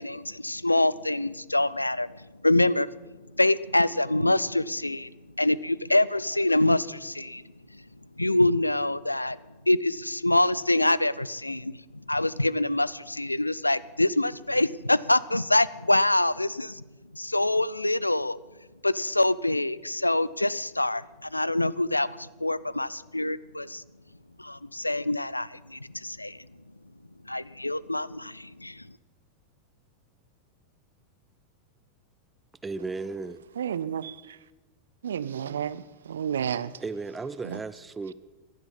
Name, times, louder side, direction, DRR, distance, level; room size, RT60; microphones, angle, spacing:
voice 1, 0.0-2.1 2.4-2.9 3.4-5.1 5.4-7.4 7.7-7.8 8.2-9.4 9.7-11.7 12.1-16.8 17.1-18.4 18.8-23.8 24.4-26.4 27.3-28.8, left 1 dB, 85° left, 0.3 m, -25 dB
voice 2, 32.6-33.4 36.8-38.1, right 3 dB, 15° right, 0.4 m, -35 dB
voice 3, 33.6-34.4 35.0-36.7 37.4-37.6, right 8 dB, 65° right, 0.5 m, -31 dB
16.0 x 11.5 x 5.5 m
figure-of-eight pair, 90°, 0 cm